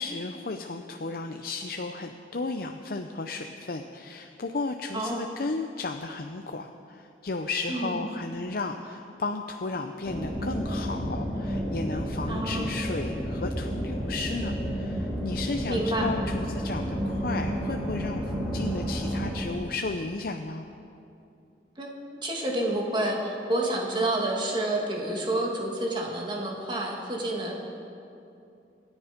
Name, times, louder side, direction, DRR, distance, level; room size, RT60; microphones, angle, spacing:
voice 1, 0.0-20.7, left 3 dB, 55° left, 5 dB, 0.6 m, -34 dB
voice 2, 4.9-5.3 7.7-8.0 12.3-12.8 15.7-16.1 21.8-21.9 22.2-27.5, right 1 dB, 25° right, -1 dB, 2.1 m, -29 dB
sound 1, 10.0-19.4, equal, 5° left, 3.5 m, -31 dB
26.0 x 9.8 x 5.1 m, 2.7 s
head